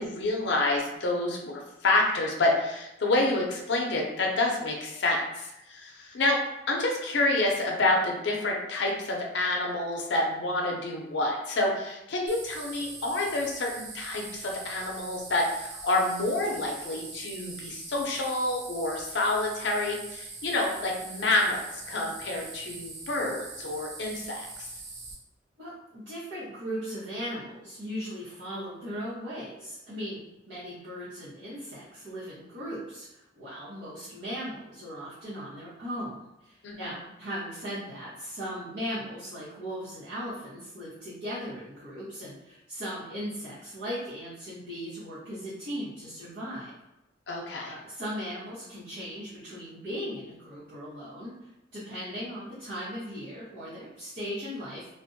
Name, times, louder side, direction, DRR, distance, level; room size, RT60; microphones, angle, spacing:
voice 1, 0.0-6.4 6.7-24.7 36.6-37.1 47.3-47.8, left 2 dB, 70° left, 0 dB, 0.5 m, -28 dB
sound 1, 12.3-25.1, right 3 dB, 40° right, 0.5 m, -42 dB
voice 2, 25.6-30.2 30.5-46.7 47.7-51.3 51.7-54.9, equal, 80° right, -13 dB, 0.9 m, -38 dB
2.5 x 2.1 x 2.6 m, 0.90 s
head